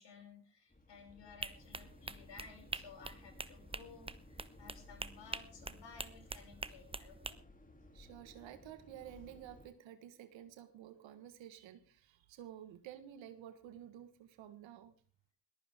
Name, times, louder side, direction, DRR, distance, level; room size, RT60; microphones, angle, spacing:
voice 1, 0.0-7.4, left 5 dB, 65° left, 3 dB, 6.4 m, -56 dB
sound 1, 0.7-9.7, left 1 dB, 15° left, 2.9 m, -58 dB
sound 2, 1.4-7.3, right 2 dB, 10° right, 1.1 m, -45 dB
voice 2, 7.9-14.9, right 11 dB, 75° right, 11 dB, 1.5 m, -52 dB
21.0 x 15.0 x 3.6 m, 0.37 s
hypercardioid pair, 45°, 45 cm